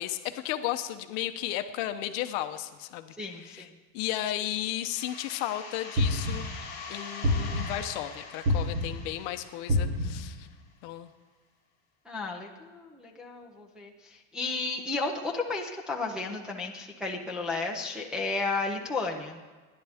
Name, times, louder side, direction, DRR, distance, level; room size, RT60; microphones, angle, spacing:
voice 1, 0.0-3.7 3.9-6.5 6.9-10.5 10.8-11.1, left 13 dB, 45° left, 8 dB, 0.9 m, -34 dB
voice 2, 3.2-3.7 12.1-19.4, left 3 dB, ahead, -3 dB, 0.6 m, -33 dB
sound 1, 4.9-10.4, left 4 dB, 25° left, 5.1 m, -43 dB
sound 2, 6.0-6.6 7.2-7.9 8.5-9.1 9.7-10.3, left 1 dB, 45° right, 3.3 m, -27 dB
29.5 x 11.0 x 3.5 m, 1.3 s
cardioid pair, 180°, 38 cm